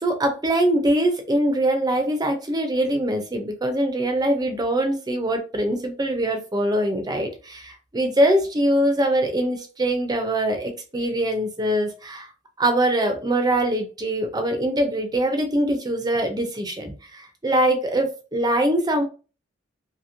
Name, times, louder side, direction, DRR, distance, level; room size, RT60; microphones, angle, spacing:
voice 1, 0.0-12.3 12.6-19.0, right 1 dB, 20° right, 5 dB, 0.5 m, -23 dB
2.9 x 2.7 x 2.6 m, 0.35 s
head